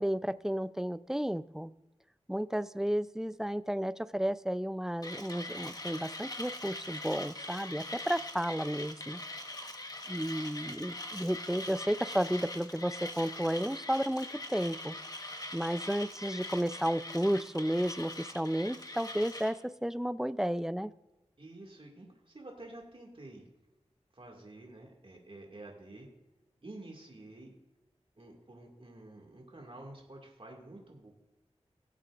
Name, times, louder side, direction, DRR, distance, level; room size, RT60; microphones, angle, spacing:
voice 1, 0.0-1.7 2.3-9.2 10.1-15.0 15.5-20.9, equal, 5° right, 15 dB, 0.4 m, -32 dB
Mechanisms, 5.0-19.6, left 1 dB, 35° left, 1.3 m, -42 dB
voice 2, 21.4-23.4 24.1-26.1 26.6-27.5 28.2-31.1, right 2 dB, 50° right, 0 dB, 2.2 m, -49 dB
18.0 x 7.5 x 2.5 m, 1.0 s
wide cardioid pair, 40°, 11 cm